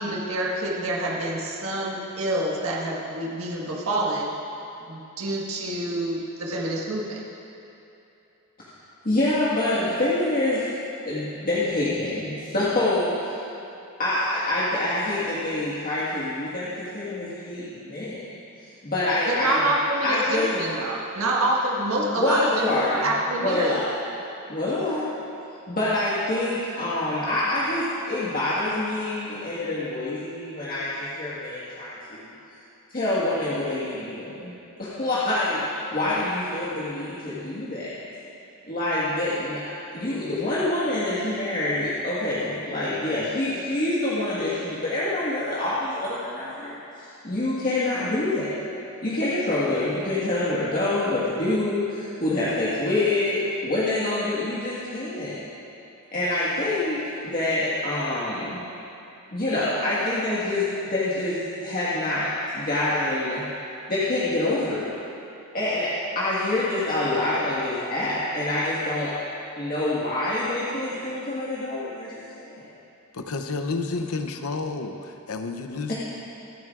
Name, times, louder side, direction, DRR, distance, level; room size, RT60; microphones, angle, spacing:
voice 1, 0.0-4.3 4.9-7.2 19.3-23.8, right 1 dB, 75° right, -4 dB, 1.6 m, -27 dB
voice 2, 9.0-10.7 11.0-13.3 14.0-18.2 18.8-19.6 20.0-20.5 22.2-23.1 23.4-23.9 24.5-25.1 25.7-32.3 32.9-37.9 38.6-48.6 49.0-55.4 56.1-58.6 59.3-63.4 63.9-65.0 65.5-69.1 69.6-72.7, left 2 dB, 40° left, -9 dB, 1.6 m, -26 dB
voice 3, 73.1-75.9, left 3 dB, 90° left, 6 dB, 0.7 m, -30 dB
24.5 x 9.2 x 2.5 m, 2.8 s
head